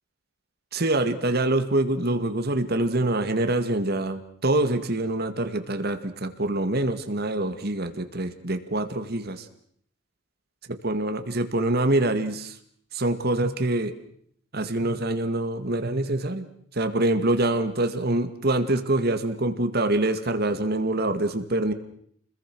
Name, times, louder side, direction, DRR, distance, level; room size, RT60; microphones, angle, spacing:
voice 1, 0.7-9.5 10.7-12.5 12.9-13.9 14.5-16.5 16.7-21.7, right 2 dB, 50° right, 9 dB, 2.1 m, -25 dB
30.0 x 21.5 x 6.2 m, 0.66 s
head